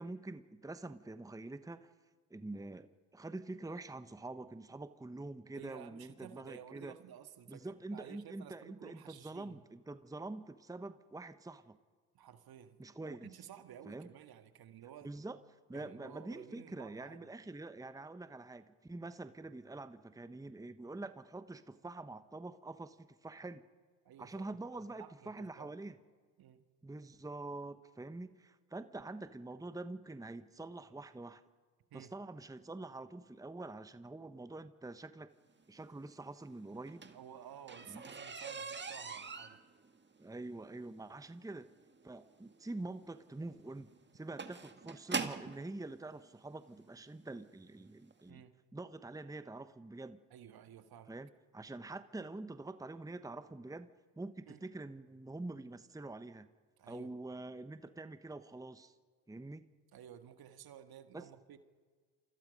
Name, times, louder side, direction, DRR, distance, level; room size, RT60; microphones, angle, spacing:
voice 1, 0.0-1.9 2.3-6.9 7.5-11.8 12.8-13.3 13.9-14.1 15.0-15.4 15.7-23.6 24.2-25.9 26.8-31.4 31.9-35.3 35.7-37.1 37.9-38.0 40.2-41.7 42.0-48.4 48.7-50.2 51.1-56.5 56.9-58.9 59.3-59.7 61.1-61.3, right 2 dB, 10° right, 12 dB, 1.1 m, -46 dB
voice 2, 5.5-9.6 12.1-15.1 15.7-17.4 24.1-25.7 26.4-26.7 31.9-32.1 37.1-39.6 48.3-48.6 50.3-51.2 54.5-54.6 56.8-57.2 59.9-61.6, right 9 dB, 60° right, 9 dB, 1.9 m, -54 dB
sound 1, 36.7-45.6 46.5-46.6 47.2-47.4 47.7-47.8 48.1-48.2, right 4 dB, 25° right, 1.8 m, -43 dB
28.5 x 25.5 x 5.4 m, 1.5 s
hypercardioid pair, 50°, 41 cm